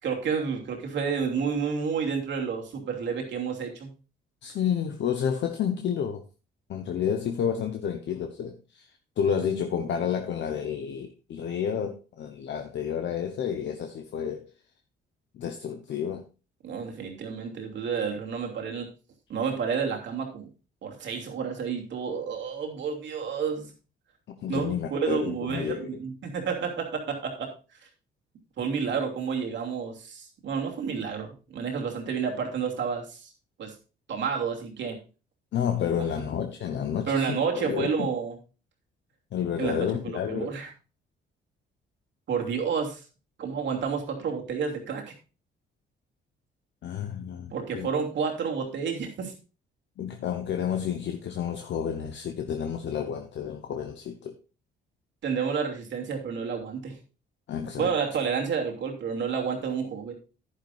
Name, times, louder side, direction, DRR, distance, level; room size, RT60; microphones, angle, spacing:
voice 1, 0.0-3.9 16.6-18.9 19.3-20.5 20.8-23.7 24.5-27.5 28.6-33.3 33.6-33.7 34.1-35.0 37.1-38.4 39.6-39.8 40.0-40.7 42.3-43.0 43.4-45.0 47.5-49.3 55.2-57.0 57.8-60.1, right 6 dB, 70° right, 2.8 m, -30 dB
voice 2, 4.4-6.2 6.7-8.9 9.2-14.4 15.3-16.2 24.4-25.9 35.5-38.1 39.3-40.5 46.8-47.9 50.0-54.3 57.5-57.9, left 8 dB, 65° left, 1.1 m, -30 dB
10.5 x 10.0 x 2.6 m
cardioid pair, 90°, 20 cm